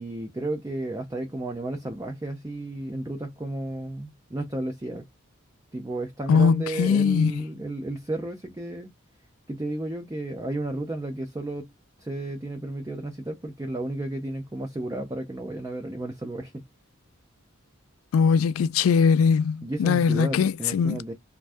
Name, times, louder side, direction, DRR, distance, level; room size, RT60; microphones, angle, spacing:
voice 1, 0.0-5.1 5.7-8.9 9.5-11.7 12.0-16.5 19.6-21.1, right 1 dB, 15° right, 0.5 m, -33 dB
voice 2, 6.3-7.3 18.1-21.0, left 6 dB, 80° left, 0.3 m, -21 dB
2.6 x 2.2 x 3.3 m
head